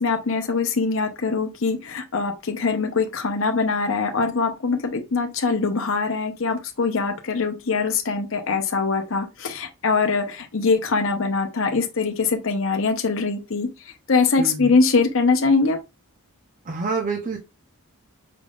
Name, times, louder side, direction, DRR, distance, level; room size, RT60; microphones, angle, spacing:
voice 1, 0.0-13.7 14.1-15.8, left 4 dB, 60° left, 0.7 m, -22 dB
voice 2, 14.4-14.8 16.7-17.4, right 4 dB, 35° right, 0.6 m, -27 dB
5.0 x 3.5 x 2.3 m
head